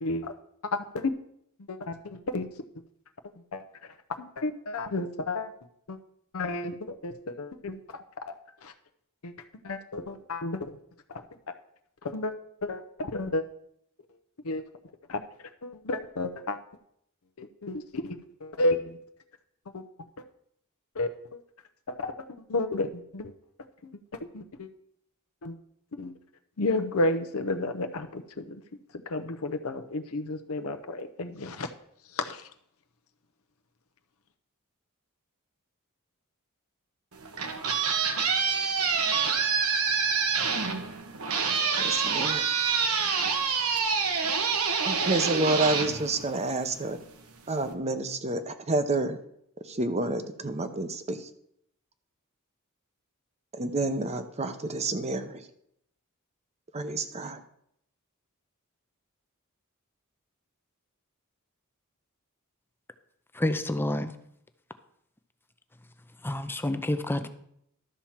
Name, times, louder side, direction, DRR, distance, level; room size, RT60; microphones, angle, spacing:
voice 1, 0.0-0.3 0.7-1.1 1.7-2.5 3.5-3.6 4.2-5.5 5.9-6.0 6.3-8.3 8.6-8.7 9.2-9.3 9.6-10.7 11.1-11.2 12.0-12.3 12.6-13.4 14.4-14.6 15.1-15.2 15.6-16.6 17.4-19.0 19.7-19.8 21.0-21.4 21.9-22.1 22.5-23.3 23.8-23.9 24.3-24.7 25.4-25.5 26.0-26.1 26.6-28.4 29.1-31.7 32.2-32.4, left 2 dB, 70° left, 7 dB, 0.7 m, -31 dB
sound 1, 37.1-46.8, right 5 dB, 85° right, 1.2 m, -27 dB
voice 2, 41.8-42.5 44.8-47.0 47.5-49.2 49.6-51.3 53.6-55.5 56.7-57.4, right 2 dB, 30° right, 10 dB, 0.8 m, -29 dB
voice 3, 63.3-64.1 66.2-67.3, left 1 dB, 10° left, 9 dB, 0.6 m, -28 dB
12.5 x 4.3 x 7.3 m, 0.73 s
head